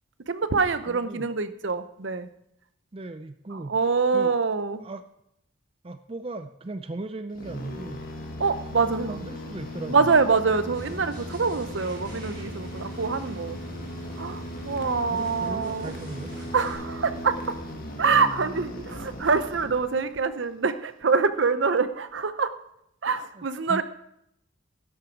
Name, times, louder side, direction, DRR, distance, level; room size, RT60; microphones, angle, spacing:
voice 1, 0.3-2.3 3.5-4.8 8.4-9.2 9.9-13.6 14.2-15.9 16.5-17.6 18.0-22.5 23.0-23.8, right 4 dB, 70° right, 12 dB, 0.7 m, -25 dB
voice 2, 0.9-1.3 2.9-3.7 4.1-4.3 4.8-5.0 5.8-8.0 8.9-10.1 14.8-16.3 19.0-19.1 23.3-23.8, right 2 dB, 30° right, 10 dB, 0.4 m, -37 dB
sound 1, 7.3-20.2, equal, 45° left, 1.7 m, -37 dB
sound 2, 10.7-16.7, right 1 dB, 50° right, 5.8 m, -47 dB
12.0 x 11.5 x 4.6 m, 0.77 s
head